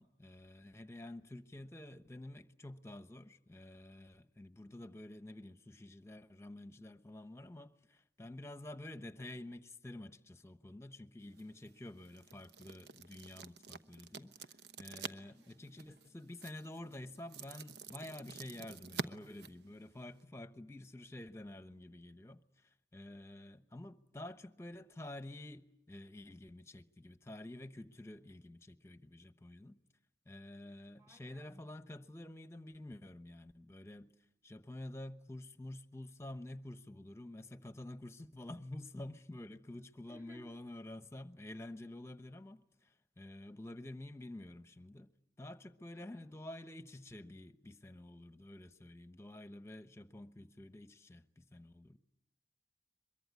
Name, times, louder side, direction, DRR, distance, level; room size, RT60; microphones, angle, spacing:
voice 1, 0.0-29.8 30.3-34.1 34.4-45.1 45.4-52.0, left 1 dB, 15° left, 1.0 m, -49 dB
sound 1, 11.2-20.2, right 5 dB, 70° right, 1.1 m, -49 dB
voice 2, 15.2-15.6 31.0-31.7 40.1-40.6 45.9-46.3, left 1 dB, 15° right, 3.0 m, -61 dB
23.0 x 23.0 x 9.5 m
head